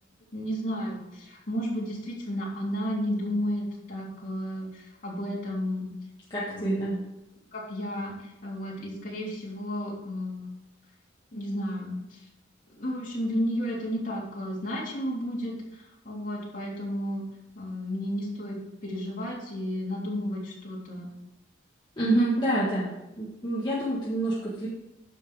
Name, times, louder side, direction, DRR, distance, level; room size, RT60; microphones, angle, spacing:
voice 1, 0.3-5.9 6.4-6.8 7.5-10.4 11.3-12.3 12.7-17.2 17.5-21.1, equal, 45° left, -5 dB, 3.1 m, -32 dB
voice 2, 6.3-7.0 22.0-24.7, right 1 dB, 25° left, -8 dB, 1.7 m, -27 dB
9.8 x 6.2 x 5.0 m, 0.90 s
head